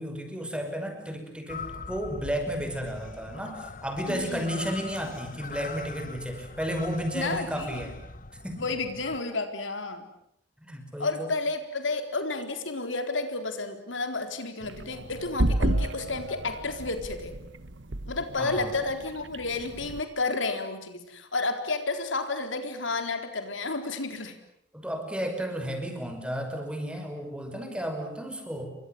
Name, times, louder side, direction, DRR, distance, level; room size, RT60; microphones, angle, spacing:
voice 1, 0.0-8.0 8.4-8.6 10.6-11.3 18.4-18.7 24.7-28.7, equal, 5° right, 5 dB, 5.7 m, -33 dB
sound 1, 1.5-9.2, left 4 dB, 45° left, 1.3 m, -42 dB
voice 2, 4.1-4.5 7.1-7.8 8.6-10.0 11.0-17.4 18.1-24.4, left 3 dB, 90° left, 7 dB, 4.1 m, -31 dB
sound 2, 14.6-20.0, right 1 dB, 80° right, 1.4 m, -31 dB
29.5 x 25.0 x 8.0 m, 0.74 s
head